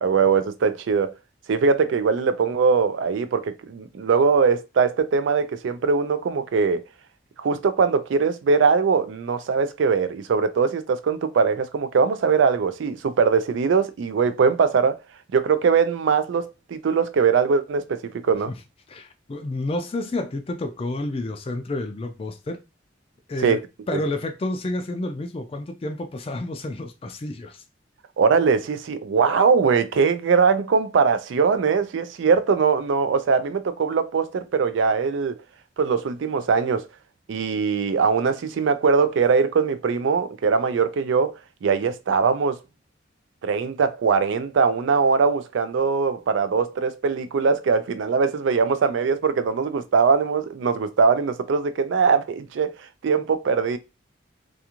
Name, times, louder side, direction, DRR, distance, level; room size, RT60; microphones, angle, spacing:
voice 1, 0.0-1.1 1.5-6.8 7.4-15.0 15.3-18.5 23.4-23.6 23.9-24.0 28.2-35.4 35.8-36.9 37.3-41.4 41.6-42.6 43.4-52.7 53.0-53.8, right 5 dB, 75° right, 0.4 m, -21 dB
voice 2, 18.9-22.6 23.3-23.6 23.9-27.6, left 2 dB, 30° left, 0.3 m, -30 dB
2.4 x 2.4 x 2.9 m
head